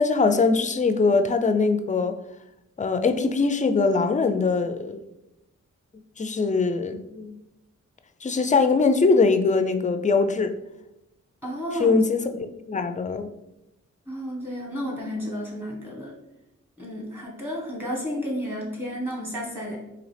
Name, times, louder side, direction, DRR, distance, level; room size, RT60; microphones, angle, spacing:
voice 1, 0.0-2.1 2.8-5.0 6.2-7.4 8.2-10.5 11.8-13.3, left 4 dB, 25° left, 8 dB, 0.3 m, -22 dB
voice 2, 11.4-12.0 14.1-16.1 16.8-19.8, equal, 5° right, -2 dB, 1.4 m, -32 dB
3.8 x 2.9 x 3.3 m, 0.89 s
cardioid pair, 70°, 31 cm